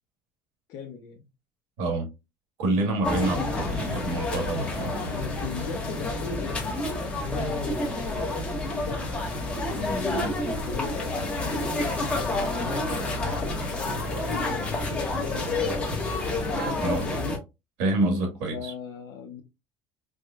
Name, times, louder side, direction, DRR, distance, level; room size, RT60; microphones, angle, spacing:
voice 1, 0.7-1.3 2.8-3.8 5.1-7.5 7.9-10.1 10.6-15.7 16.8-17.4 18.5-19.4, left 6 dB, 50° left, 0.6 m, -40 dB
voice 2, 2.6-5.0 16.8-17.0 17.8-18.7, right 2 dB, 90° right, 1.6 m, -27 dB
sound 1, 3.0-17.4, left 2 dB, 15° left, 0.9 m, -29 dB
4.8 x 2.1 x 2.3 m
cardioid pair, 160°, 8 cm